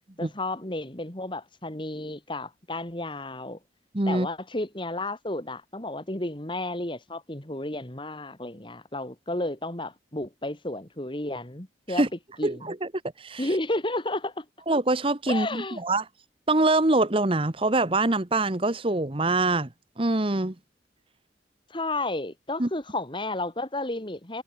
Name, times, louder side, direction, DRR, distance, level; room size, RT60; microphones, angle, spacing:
voice 1, 0.2-3.6 4.1-12.0 12.4-12.7 13.4-14.5 15.3-15.8 21.7-24.4, left 2 dB, 30° left, 2.5 m, -32 dB
voice 2, 3.9-4.3 11.9-12.1 12.4-12.9 13.2-13.4 14.7-16.0 16.5-19.7 20.0-20.5 22.6-22.7, right 2 dB, 30° right, 1.2 m, -24 dB
head